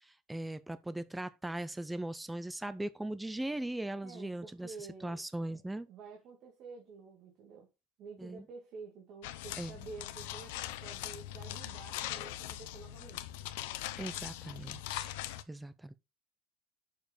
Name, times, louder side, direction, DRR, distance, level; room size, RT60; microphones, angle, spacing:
voice 1, 0.0-4.7 5.0-5.9 8.2-8.4 9.6-9.8 14.0-15.1 15.5-15.9, right 1 dB, 5° right, 0.4 m, -39 dB
voice 2, 4.0-5.6 5.9-7.7 8.0-13.3, right 4 dB, 40° right, 1.9 m, -50 dB
sound 1, 9.2-15.4, left 14 dB, 80° left, 0.7 m, -41 dB
6.7 x 4.8 x 4.9 m
cardioid pair, 175°, 0 cm